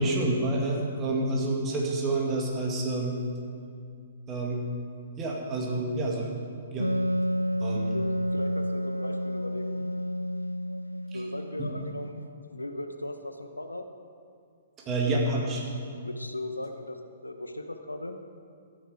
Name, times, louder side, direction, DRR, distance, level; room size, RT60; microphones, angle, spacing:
voice 1, 0.0-3.2 4.3-4.6 5.2-6.3 6.7-6.9 7.6-8.0 11.1-11.2 11.6-11.7 14.9-15.6, right 2 dB, 20° right, -1 dB, 2.1 m, -28 dB
Wind instrument woodwind instrument, 6.8-12.2, equal, 90° right, 0.3 m, -30 dB
voice 2, 7.9-10.0 11.1-13.9 16.0-18.2, left 1 dB, 80° left, 7 dB, 0.8 m, -38 dB
13.5 x 10.0 x 4.9 m, 2.3 s
figure-of-eight pair, 120°, 0 cm